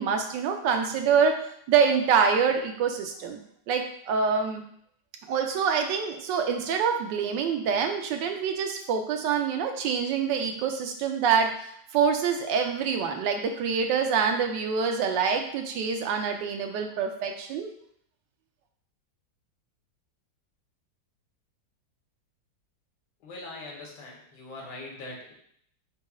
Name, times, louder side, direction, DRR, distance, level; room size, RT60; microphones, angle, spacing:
voice 1, 0.0-1.3 1.7-3.4 3.7-4.6 5.3-17.7, right 6 dB, 85° right, 5 dB, 1.3 m, -26 dB
voice 2, 23.2-25.3, left 2 dB, 75° left, -1 dB, 1.7 m, -41 dB
4.3 x 2.3 x 4.7 m, 0.66 s
omnidirectional pair, 1.9 m